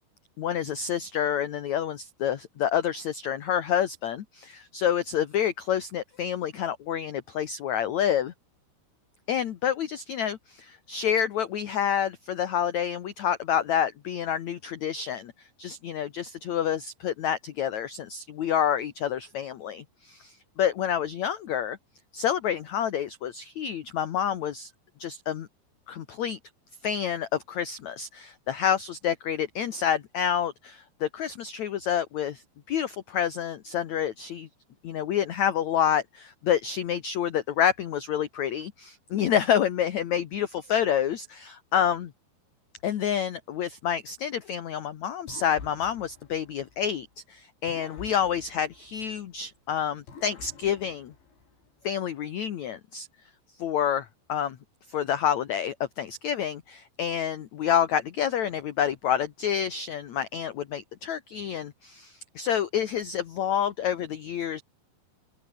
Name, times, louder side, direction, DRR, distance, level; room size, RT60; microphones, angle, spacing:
voice 1, 0.4-8.3 9.3-21.8 22.1-24.7 25.0-25.5 25.9-26.4 26.8-34.5 34.8-42.1 42.8-51.1 51.8-53.1 53.6-54.6 54.9-64.6, left 9 dB, 60° left, 1.9 m, -28 dB
sound 1, 45.3-47.2 47.7-49.6 50.1-51.8, left 5 dB, 85° left, 9.1 m, -48 dB
open air
omnidirectional pair, 5.0 m